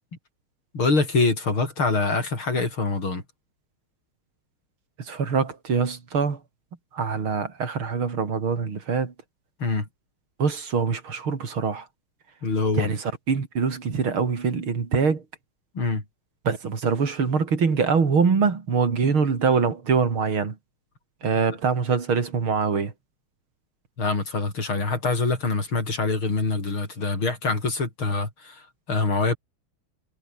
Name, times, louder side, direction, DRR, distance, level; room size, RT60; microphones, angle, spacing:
voice 1, 0.7-3.2 9.6-9.9 12.4-12.9 15.7-16.0 24.0-29.4, left 3 dB, 80° left, 6.4 m, -25 dB
voice 2, 5.0-6.4 6.9-9.1 10.4-11.9 12.8-15.2 16.5-20.6 21.2-22.9, right 5 dB, 85° right, 3.9 m, -24 dB
omnidirectional pair, 2.2 m